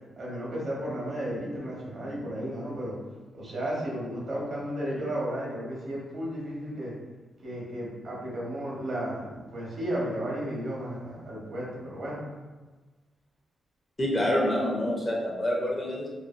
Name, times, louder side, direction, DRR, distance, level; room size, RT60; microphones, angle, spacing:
voice 1, 0.2-3.0 3.3-6.9 7.4-12.2, equal, 60° right, -5 dB, 1.0 m, -33 dB
voice 2, 14.0-16.1, left 1 dB, 25° left, -3 dB, 0.6 m, -27 dB
2.5 x 2.3 x 2.4 m, 1.2 s
cardioid pair, 100°, 0 cm